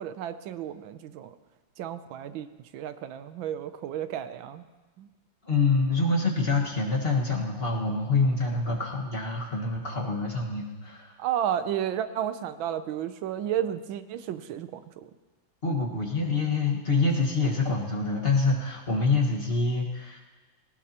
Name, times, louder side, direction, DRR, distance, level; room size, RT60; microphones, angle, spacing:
voice 1, 0.0-1.3 1.8-2.5 2.7-4.6 5.0-5.1 11.2-15.1, right 10 dB, 90° right, 11 dB, 1.5 m, -32 dB
voice 2, 5.4-11.2 15.6-20.2, left 3 dB, 30° left, -2 dB, 1.6 m, -26 dB
19.5 x 18.5 x 2.9 m, 1.3 s
omnidirectional pair, 2.1 m